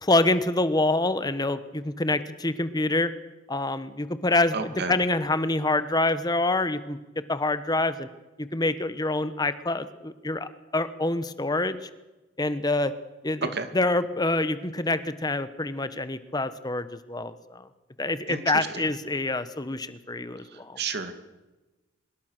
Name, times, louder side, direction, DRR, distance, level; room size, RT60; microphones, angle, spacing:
voice 1, 0.0-3.1 3.5-7.0 7.3-8.1 8.4-11.9 12.4-12.9 13.2-17.7 18.0-20.8, left 2 dB, 20° left, 12 dB, 1.1 m, -26 dB
voice 2, 4.5-4.9 13.5-13.7 18.3-18.7 20.8-21.1, right 5 dB, 55° right, 8 dB, 2.4 m, -31 dB
24.5 x 21.5 x 6.6 m, 1.1 s
head